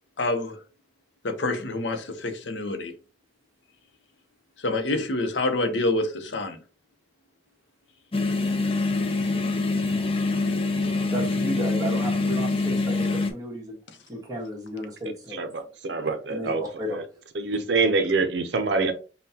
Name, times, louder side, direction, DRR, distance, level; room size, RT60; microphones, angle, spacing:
voice 1, 0.2-0.6 1.2-2.9 4.6-6.6, left 2 dB, 75° left, 0.7 m, -27 dB
sound 1, 8.1-13.3, left 3 dB, 30° left, 0.5 m, -25 dB
voice 2, 11.1-13.8 14.1-15.6 16.3-17.0, equal, 20° right, 1.3 m, -33 dB
voice 3, 15.3-16.6 16.9-17.0 17.4-18.9, right 3 dB, 70° right, 0.6 m, -25 dB
5.5 x 2.2 x 2.8 m
head